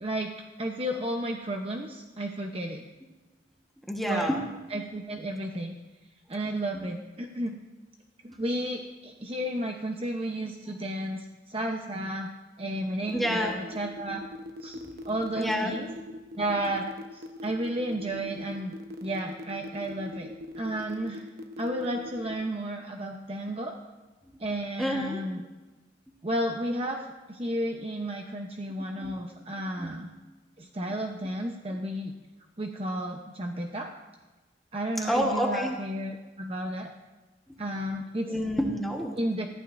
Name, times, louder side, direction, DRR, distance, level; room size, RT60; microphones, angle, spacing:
voice 1, 0.0-0.3 0.6-2.8 4.1-4.3 4.7-5.8 6.3-7.6 8.2-12.3 12.6-14.2 14.6-14.8 15.0-15.9 16.4-18.7 19.0-21.3 21.6-23.8 24.4-25.4 26.2-30.1 30.6-32.1 32.6-33.9 34.7-36.9 37.6-38.3 39.2-39.5, right 1 dB, 35° right, 2 dB, 0.9 m, -32 dB
voice 2, 3.8-4.5 6.7-6.9 8.3-8.4 13.1-13.6 14.7-15.0 15.4-15.7 24.2-24.4 24.8-25.2 26.1-26.2 28.9-29.1 29.8-30.0 31.7-31.8 35.1-35.8 37.5-37.6 38.3-39.2, equal, ahead, 0 dB, 1.3 m, -29 dB
sound 1, 13.1-22.4, left 2 dB, 60° right, 1.0 m, -41 dB
20.5 x 14.5 x 2.7 m, 1.2 s
head